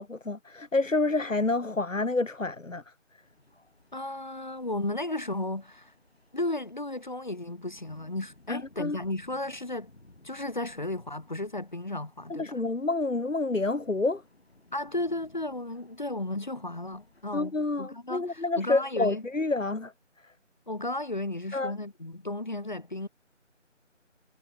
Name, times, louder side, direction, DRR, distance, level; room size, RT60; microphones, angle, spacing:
voice 1, 0.0-2.9 8.5-9.0 12.3-14.2 17.3-19.9 20.2-20.3 21.5-21.7, left 3 dB, 85° left, 1.4 m, -28 dB
sound 1, 3.2-17.5, left 2 dB, 55° left, 4.4 m, -60 dB
voice 2, 3.9-5.9 6.3-9.9 10.2-12.6 14.7-19.2 20.7-23.1, left 2 dB, 40° left, 1.7 m, -34 dB
figure-of-eight pair, 165°, 38 cm